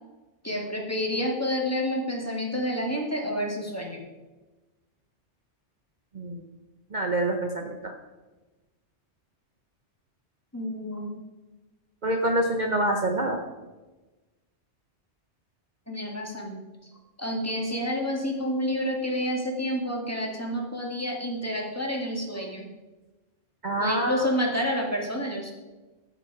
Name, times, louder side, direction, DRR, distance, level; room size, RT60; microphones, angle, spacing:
voice 1, 0.4-4.0 10.5-11.2 15.9-16.9 17.2-22.7 23.8-25.5, equal, 15° left, -1 dB, 1.9 m, -29 dB
voice 2, 6.1-6.5 6.9-7.9 12.0-13.4 23.6-24.3, right 1 dB, 45° right, 3 dB, 0.9 m, -26 dB
15.0 x 7.0 x 4.8 m, 1.2 s
omnidirectional pair, 1.2 m